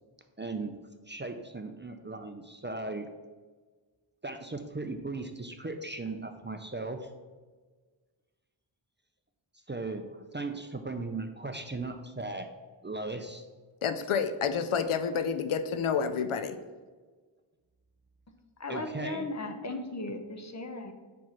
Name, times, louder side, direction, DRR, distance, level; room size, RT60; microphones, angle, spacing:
voice 1, 0.4-0.7 1.1-3.1 4.2-7.1 9.7-12.5 12.8-13.5 18.7-19.3, right 3 dB, 25° right, 6 dB, 0.4 m, -37 dB
voice 2, 13.8-16.6, left 6 dB, 80° left, 10 dB, 0.6 m, -29 dB
voice 3, 18.6-20.9, left 2 dB, 35° left, 6 dB, 0.8 m, -36 dB
4.7 x 4.6 x 5.7 m, 1.4 s
wide cardioid pair, 60°, 50 cm